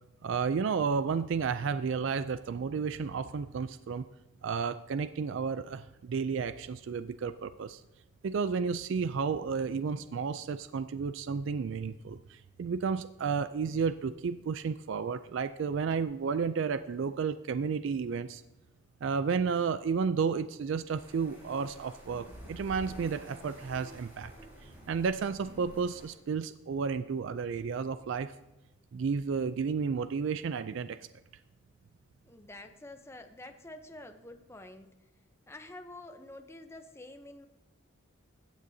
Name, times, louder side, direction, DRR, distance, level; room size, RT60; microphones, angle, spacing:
voice 1, 0.2-4.1 4.4-7.8 8.2-18.4 19.0-24.3 24.9-28.3 28.9-31.0, right 5 dB, 60° right, 12 dB, 0.3 m, -32 dB
sound 1, 20.9-26.1, right 1 dB, 10° right, 4.2 m, -50 dB
voice 2, 32.2-34.9 35.5-37.5, left 2 dB, 10° left, 7 dB, 0.7 m, -48 dB
16.0 x 9.2 x 2.7 m, 1.0 s
head